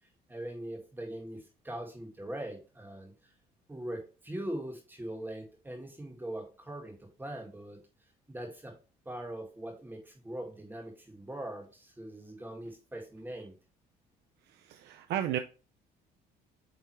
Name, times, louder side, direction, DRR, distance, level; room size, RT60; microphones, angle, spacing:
voice 1, 0.3-3.3 3.7-7.8 8.3-8.8 9.1-13.5, right 1 dB, 10° right, 1 dB, 2.0 m, -41 dB
voice 2, 14.5-15.4, right 11 dB, 80° right, 8 dB, 0.6 m, -33 dB
8.7 x 3.4 x 3.2 m, 0.34 s
cardioid pair, 110°, 17 cm